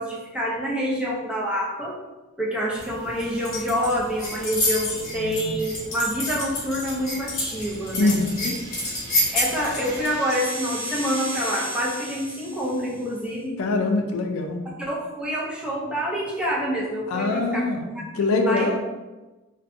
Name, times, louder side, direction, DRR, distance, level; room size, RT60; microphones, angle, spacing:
voice 1, 0.0-1.9 2.4-8.2 9.3-13.6 14.8-17.6 17.9-18.0 18.4-18.7, equal, 5° right, -5 dB, 0.4 m, -27 dB
sound 1, 2.8-10.1, left 1 dB, 45° left, 0.9 m, -29 dB
sound 2, 7.2-13.1, right 1 dB, 60° right, 0.5 m, -36 dB
voice 2, 7.9-8.5 13.6-14.6 17.1-17.8 18.2-18.8, left 2 dB, 85° left, 4 dB, 0.3 m, -23 dB
2.6 x 2.1 x 2.5 m, 1.1 s
head